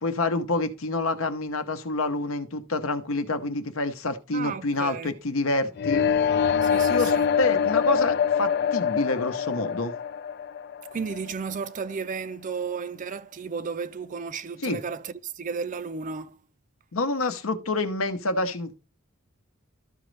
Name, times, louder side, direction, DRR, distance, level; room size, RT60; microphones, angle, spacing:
voice 1, 0.0-6.0 6.9-9.9 14.6-14.8 16.9-18.7, left 2 dB, 70° left, 0.9 m, -27 dB
voice 2, 4.3-5.1 6.6-7.3 10.9-16.4, right 5 dB, 35° right, 0.4 m, -33 dB
sound 1, 5.8-11.7, left 7 dB, 50° left, 0.3 m, -24 dB
12.5 x 5.1 x 3.2 m
head